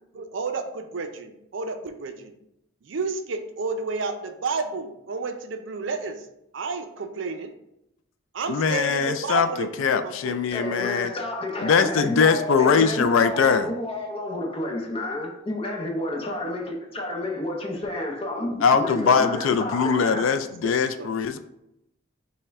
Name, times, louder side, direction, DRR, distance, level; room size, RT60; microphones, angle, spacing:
voice 1, 0.1-2.4 2.8-6.3 6.5-7.6 8.3-10.5 11.8-11.9 19.0-21.1, right 4 dB, 65° right, 0.5 m, -32 dB
voice 2, 8.5-9.5 9.8-11.1 11.6-13.7 18.6-21.4, left 6 dB, 75° left, 0.3 m, -21 dB
voice 3, 10.4-20.4, left 1 dB, 30° left, 0.7 m, -30 dB
5.4 x 2.2 x 3.5 m
head